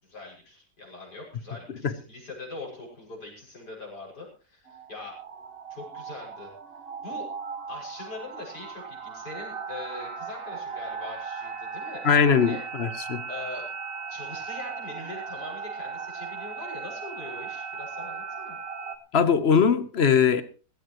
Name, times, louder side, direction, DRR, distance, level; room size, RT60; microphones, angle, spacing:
voice 1, 0.0-5.2 5.7-6.5 7.0-7.3 7.7-12.6 13.3-13.7 14.1-18.6, left 3 dB, 70° left, 7.0 m, -42 dB
sound 1, 4.7-19.0, right 5 dB, 40° right, 1.4 m, -37 dB
voice 2, 12.0-13.2 19.1-20.4, left 6 dB, 45° left, 1.2 m, -21 dB
17.5 x 16.0 x 3.1 m
omnidirectional pair, 1.8 m